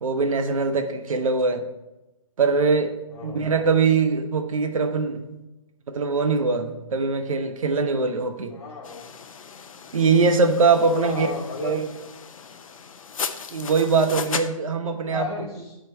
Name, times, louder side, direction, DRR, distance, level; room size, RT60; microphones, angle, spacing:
voice 1, 0.0-1.6 2.4-3.0 3.2-5.3 5.9-8.5 9.9-11.3 11.6-11.9 13.5-15.3, right 4 dB, 70° right, 6 dB, 1.0 m, -22 dB
voice 2, 8.5-9.1 10.7-11.7 15.0-15.8, left 5 dB, 50° left, -3 dB, 1.3 m, -33 dB
sound 1, 8.8-14.5, left 6 dB, 75° left, 0.7 m, -36 dB
9.7 x 4.4 x 4.4 m, 0.98 s
hypercardioid pair, 155°, 18 cm